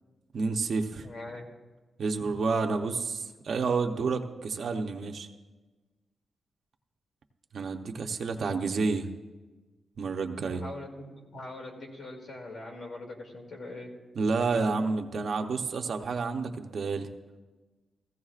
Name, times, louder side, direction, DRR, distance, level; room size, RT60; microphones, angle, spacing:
voice 1, 0.3-1.1 2.0-5.3 7.5-9.1 10.0-10.6 14.2-17.1, right 4 dB, 55° right, 5 dB, 0.7 m, -29 dB
voice 2, 1.0-1.5 10.5-13.9, left 2 dB, 60° left, 0 dB, 2.2 m, -42 dB
15.5 x 15.0 x 2.4 m, 1.2 s
wide cardioid pair, 165°, 0 cm